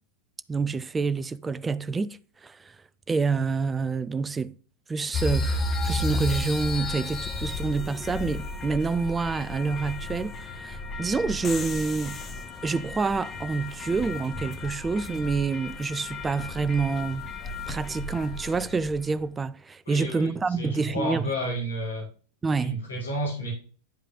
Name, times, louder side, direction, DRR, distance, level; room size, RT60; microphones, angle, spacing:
voice 1, 0.5-2.8 3.1-4.5 4.9-12.2 12.6-17.3 17.7-21.3 22.4-22.8, right 4 dB, 15° right, 0.3 m, -27 dB
sound 1, 5.1-19.1, left 2 dB, 20° left, 0.7 m, -33 dB
voice 2, 19.9-20.3 20.6-22.1 22.6-23.5, equal, 70° left, 2.0 m, -31 dB
10.0 x 5.0 x 2.6 m
figure-of-eight pair, 90°, 0 cm